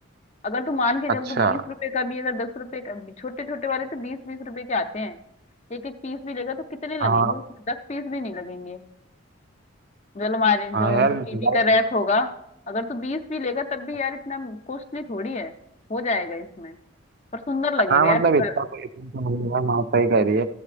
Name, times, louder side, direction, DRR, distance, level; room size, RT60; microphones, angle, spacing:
voice 1, 0.4-5.2 5.7-8.8 10.1-12.3 12.7-15.5 15.9-16.8 17.3-18.6, left 3 dB, 30° left, 8 dB, 0.5 m, -27 dB
voice 2, 7.0-7.3 10.7-11.6 17.9-20.5, right 4 dB, 45° right, 10 dB, 0.4 m, -21 dB
13.5 x 7.5 x 3.3 m, 0.81 s
head